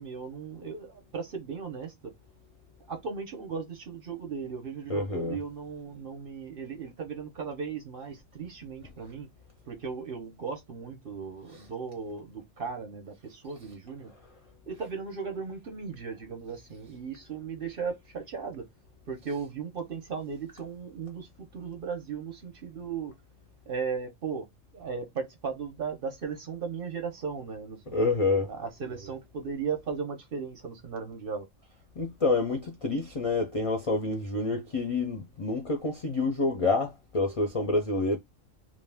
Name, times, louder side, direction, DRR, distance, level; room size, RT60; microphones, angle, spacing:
voice 1, 0.0-2.1 2.9-9.3 9.7-14.1 14.7-18.6 19.1-23.1 23.7-24.5 24.7-28.0 28.4-31.5, right 5 dB, 55° right, 0.8 m, -36 dB
voice 2, 4.9-5.4 11.5-11.6 27.9-28.5 32.0-38.2, left 3 dB, 55° left, 0.4 m, -28 dB
2.5 x 2.2 x 3.3 m
omnidirectional pair, 1.3 m